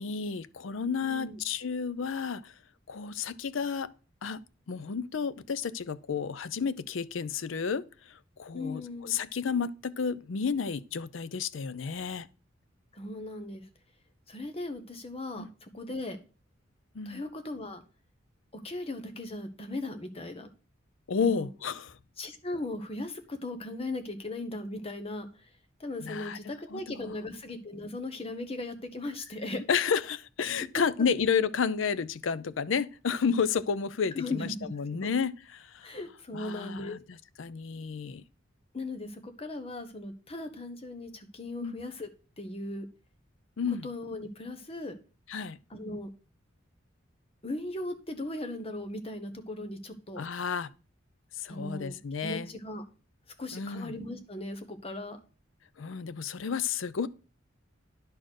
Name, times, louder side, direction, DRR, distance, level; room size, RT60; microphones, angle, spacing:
voice 1, 0.0-2.5 2.9-3.9 4.2-12.3 15.4-15.5 16.9-17.2 21.1-22.0 26.0-27.1 29.7-35.9 36.3-38.2 41.6-41.8 43.6-43.9 45.3-45.6 50.2-50.7 51.4-52.5 53.5-54.0 55.8-57.1, left 6 dB, 75° left, 0.5 m, -31 dB
voice 2, 1.0-1.4 8.5-9.2 12.9-13.7 14.3-16.2 17.0-17.8 18.5-20.5 21.2-21.5 22.2-25.5 25.8-29.6 30.7-30.8 34.1-35.1 35.8-37.0 38.7-42.1 42.4-42.9 43.8-45.0 45.7-46.1 47.4-50.2 51.5-52.0 52.2-52.8 53.4-55.2, left 2 dB, 30° left, 1.1 m, -38 dB
10.5 x 4.2 x 6.4 m
head